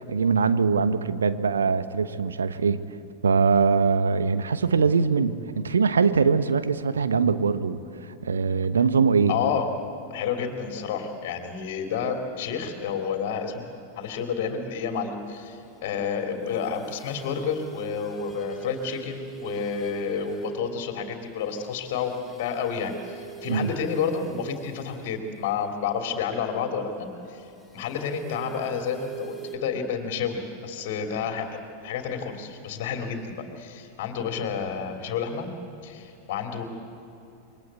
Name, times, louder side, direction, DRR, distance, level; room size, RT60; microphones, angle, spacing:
voice 1, 0.1-2.8 3.2-9.4 23.5-23.7, right 5 dB, 70° right, 13 dB, 1.1 m, -22 dB
voice 2, 9.3-9.7 10.1-13.7 13.9-27.5 27.7-35.5 35.8-36.6, left 6 dB, 50° left, 4 dB, 3.1 m, -30 dB
sound 1, 16.5-20.8 21.4-25.1 27.6-29.6, right 8 dB, 5° right, 5.9 m, -41 dB
28.0 x 23.5 x 8.3 m, 2.8 s
figure-of-eight pair, 90°, 0 cm